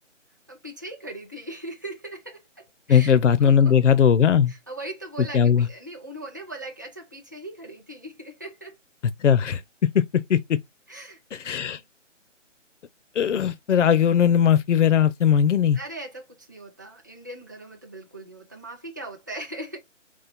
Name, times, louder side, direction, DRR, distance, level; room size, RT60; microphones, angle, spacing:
voice 1, 0.5-3.9 4.5-8.8 10.9-11.8 15.7-19.8, right 1 dB, 15° right, 0.5 m, -39 dB
voice 2, 2.9-4.5 5.3-5.7 9.2-9.6 9.9-10.4 11.3-11.8 13.2-15.8, left 8 dB, 70° left, 0.6 m, -19 dB
4.1 x 2.5 x 4.3 m
figure-of-eight pair, 150°, 38 cm